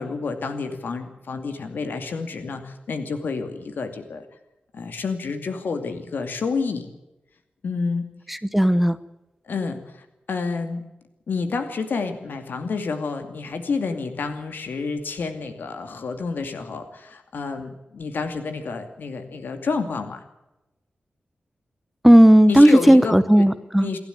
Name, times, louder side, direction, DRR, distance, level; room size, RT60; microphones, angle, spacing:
voice 1, 0.0-4.2 4.7-6.9 7.6-8.1 9.4-10.9 11.3-20.2 22.5-23.5 23.8-24.0, left 4 dB, 85° left, 6 dB, 2.5 m, -29 dB
voice 2, 8.3-9.0 22.0-23.9, equal, 5° right, 13 dB, 0.9 m, -14 dB
28.0 x 12.0 x 9.1 m, 0.96 s
wide cardioid pair, 140°, 3 cm